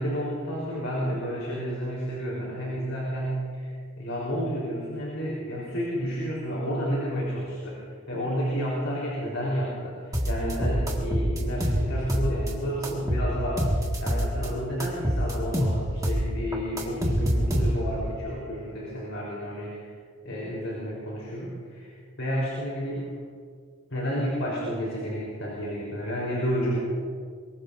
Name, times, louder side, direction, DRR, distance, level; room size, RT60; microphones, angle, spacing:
voice 1, 0.0-13.7 14.0-19.9 20.2-21.9 22.2-23.1 23.9-26.8, equal, 65° left, -5 dB, 4.0 m, -31 dB
sound 1, 10.1-12.5 12.8-14.5 14.8-18.0, equal, 15° right, 1.9 m, -25 dB
23.5 x 22.0 x 2.6 m, 2.1 s
head